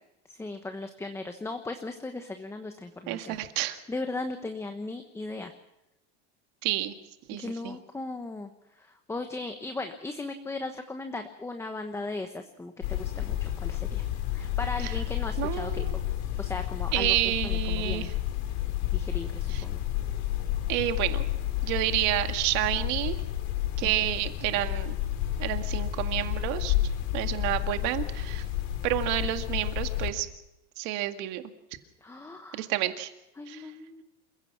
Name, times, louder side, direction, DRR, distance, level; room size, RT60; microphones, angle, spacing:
voice 1, 0.3-3.4 3.9-5.5 7.3-8.5 8.7-14.0 14.3-15.9 16.4-17.1 17.4-18.1 18.9-19.8 23.8-23.9 32.0-32.7 33.4-34.0, left 2 dB, 10° left, 6 dB, 1.2 m, -37 dB
voice 2, 3.1-3.8 6.6-7.0 7.3-7.8 14.8-14.9 15.4-15.9 16.9-18.1 19.5-19.6 20.7-21.3 21.6-23.2 23.8-25.0 25.4-26.8 27.1-28.4 28.8-30.3 30.8-31.4 32.5-33.1 33.5-33.7, right 14 dB, 55° right, 8 dB, 2.0 m, -29 dB
sound 1, 12.8-30.1, left 13 dB, 70° left, 3.2 m, -31 dB
28.0 x 16.0 x 6.0 m, 0.92 s
supercardioid pair, 145°, 34 cm